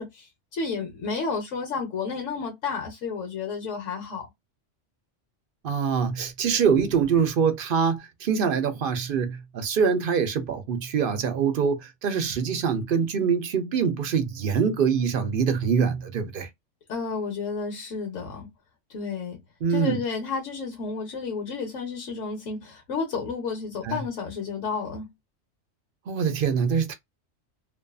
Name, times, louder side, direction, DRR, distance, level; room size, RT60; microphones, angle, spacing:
voice 1, 0.0-4.3 16.9-18.5 18.9-19.4 19.7-25.1, left 5 dB, 90° left, 1.2 m, -31 dB
voice 2, 5.6-16.5 19.6-20.0 23.8-24.0 26.1-26.9, right 6 dB, 55° right, 0.7 m, -24 dB
2.5 x 2.5 x 2.3 m
omnidirectional pair, 1.2 m